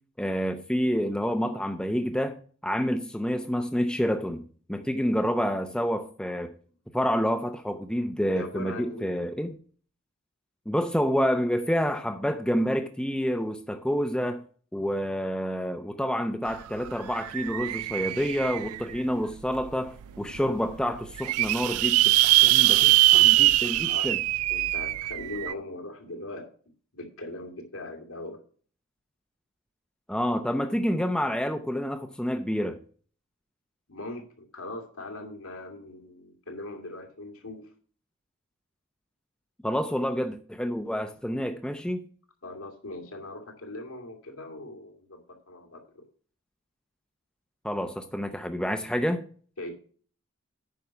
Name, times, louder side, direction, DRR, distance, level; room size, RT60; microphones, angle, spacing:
voice 1, 0.2-2.4 2.6-4.4 4.7-6.5 6.9-9.5 10.7-14.4 14.7-24.2 30.1-32.8 39.6-42.1 47.6-49.2, equal, 5° left, 0.6 m, -28 dB
voice 2, 8.3-9.3 22.3-24.1 24.5-26.5 26.9-28.4 33.9-37.7 42.4-46.0 49.6-49.7, left 2 dB, 80° left, 2.4 m, -40 dB
sound 1, 16.5-16.6 16.9-19.0 19.6-19.7 20.0-20.1 20.3-20.4 20.9-25.5, right 18 dB, 80° right, 0.3 m, -22 dB
9.3 x 5.7 x 5.8 m
head